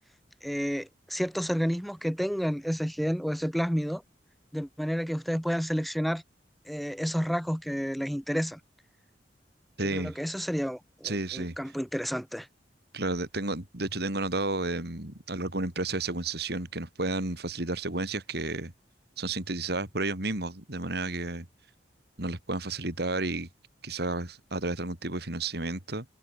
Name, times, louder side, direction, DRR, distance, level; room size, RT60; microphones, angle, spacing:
voice 1, 0.4-4.0 4.5-6.2 6.7-8.6 9.8-12.5, equal, ahead, 5.0 m, -30 dB
voice 2, 9.8-10.2 11.0-11.6 12.9-18.7 19.2-21.5 22.2-23.5 23.8-26.1, right 2 dB, 65° right, 3.5 m, -32 dB
head